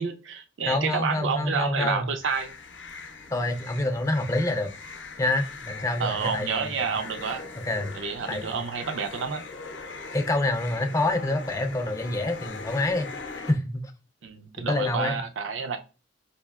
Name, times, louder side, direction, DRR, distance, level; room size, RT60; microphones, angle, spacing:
voice 1, 0.0-2.5 6.0-7.4 7.9-9.4 14.2-15.8, right 5 dB, 75° right, 0.5 m, -29 dB
voice 2, 0.7-2.1 3.3-4.7 5.2-7.0 7.6-7.9 8.3-8.6 10.1-13.9 14.6-15.2, left 2 dB, 15° left, 0.3 m, -27 dB
sound 1, 2.2-13.5, left 4 dB, 70° left, 0.5 m, -41 dB
4.2 x 2.7 x 2.3 m
head